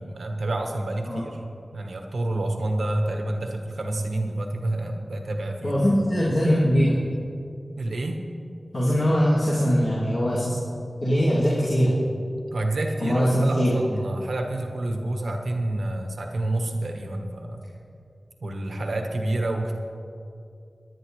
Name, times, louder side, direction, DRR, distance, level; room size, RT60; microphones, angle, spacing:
voice 1, 0.0-1.4 1.7-5.8 7.8-8.2 12.5-17.6 18.4-19.7, right 1 dB, 80° right, 3 dB, 1.2 m, -28 dB
voice 2, 5.6-6.9 8.7-10.5 11.0-11.9 13.0-13.7, equal, 50° left, -10 dB, 2.7 m, -21 dB
22.5 x 9.5 x 3.2 m, 2.5 s
wide cardioid pair, 90°, 0 cm